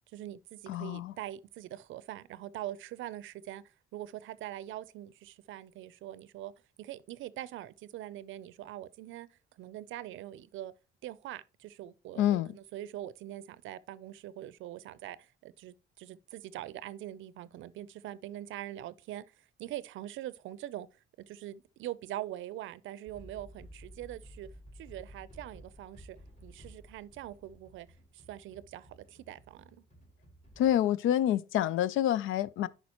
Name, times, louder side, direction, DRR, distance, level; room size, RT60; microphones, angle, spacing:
voice 1, 0.1-3.6 3.9-6.5 6.8-9.3 9.6-10.7 11.0-19.3 19.6-20.9 21.2-24.5 24.8-26.2 26.4-27.9 28.1-29.8, right 13 dB, 80° right, 0.5 m, -43 dB
voice 2, 0.7-1.1 12.2-12.6 30.6-32.7, left 11 dB, 85° left, 0.4 m, -27 dB
sound 1, 23.1-30.7, equal, 35° left, 3.9 m, -54 dB
10.5 x 5.1 x 2.9 m
cardioid pair, 90°, 20 cm